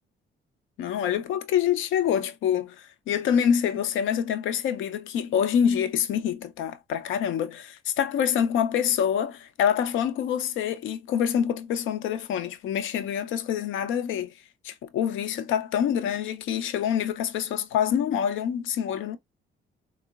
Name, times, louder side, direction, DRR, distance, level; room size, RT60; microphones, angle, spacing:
voice 1, 0.8-14.3 14.6-19.2, left 8 dB, 80° left, 0.5 m, -26 dB
3.6 x 2.1 x 2.3 m
cardioid pair, 90°, 20 cm